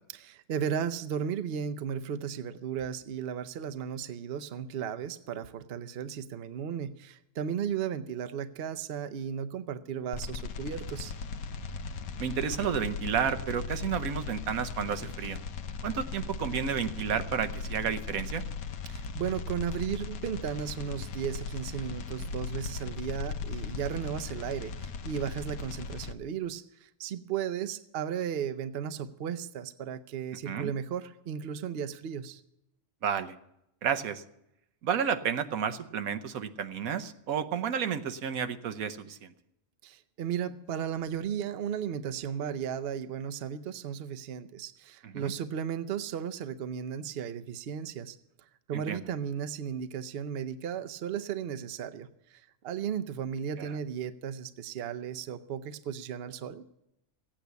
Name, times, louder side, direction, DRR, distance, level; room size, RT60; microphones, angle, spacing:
voice 1, 0.2-11.1 18.9-32.4 39.8-48.2 48.7-52.1 52.6-56.6, right 8 dB, 55° right, 10 dB, 0.8 m, -35 dB
sound 1, 10.1-26.1, left 5 dB, 90° left, 1.2 m, -38 dB
voice 2, 12.2-15.4 15.8-18.4 30.5-30.7 33.0-33.4 33.8-34.2 34.8-39.3 45.0-45.3 48.7-49.0 53.6-53.8, right 7 dB, 85° right, 10 dB, 1.3 m, -31 dB
15.0 x 8.8 x 8.1 m, 0.83 s
omnidirectional pair, 1.5 m